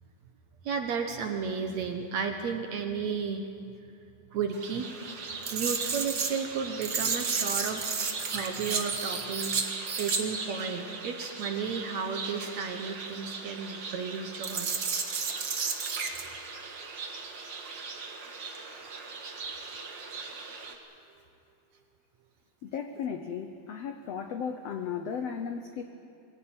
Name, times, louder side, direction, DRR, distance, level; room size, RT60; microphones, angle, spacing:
voice 1, 0.6-3.5 4.3-4.9 5.5-9.7 10.0-14.7 15.7-15.9, right 5 dB, 65° right, 5 dB, 1.9 m, -33 dB
sound 1, 4.5-20.7, right 5 dB, 45° right, 1.6 m, -34 dB
voice 2, 22.6-25.8, left 7 dB, 85° left, 6 dB, 1.4 m, -35 dB
23.0 x 17.5 x 8.9 m, 2.5 s
omnidirectional pair, 4.2 m